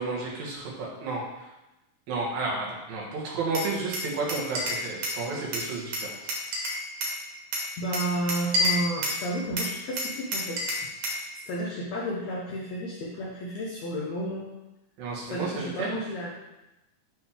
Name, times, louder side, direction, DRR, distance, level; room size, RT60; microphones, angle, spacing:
voice 1, 0.0-1.5 2.1-6.1 15.0-16.0, right 3 dB, 90° right, -4 dB, 3.3 m, -32 dB
Glass, 3.5-5.2 5.5-7.2 7.5-9.2 9.6-11.2, left 1 dB, 60° right, 2.3 m, -29 dB
voice 2, 7.8-10.7 11.5-14.5 15.3-16.3, right 1 dB, 70° left, -4 dB, 1.7 m, -32 dB
10.5 x 3.6 x 3.5 m, 0.95 s
omnidirectional pair, 4.0 m